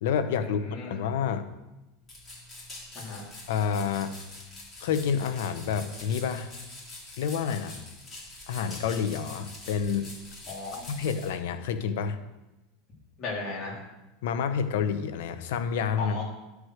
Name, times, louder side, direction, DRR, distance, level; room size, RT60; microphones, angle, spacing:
voice 1, 0.0-1.5 3.5-4.1 4.8-6.5 7.2-7.8 8.5-10.1 10.9-12.2 14.2-16.2, left 7 dB, 75° left, 10 dB, 0.9 m, -29 dB
sound 1, 2.1-11.3, left 2 dB, 20° left, 3.6 m, -45 dB
voice 2, 10.5-10.9 13.2-13.8 16.0-16.2, left 3 dB, 35° left, -4 dB, 3.7 m, -35 dB
11.0 x 4.9 x 6.4 m, 1.0 s
supercardioid pair, 130°, 0 cm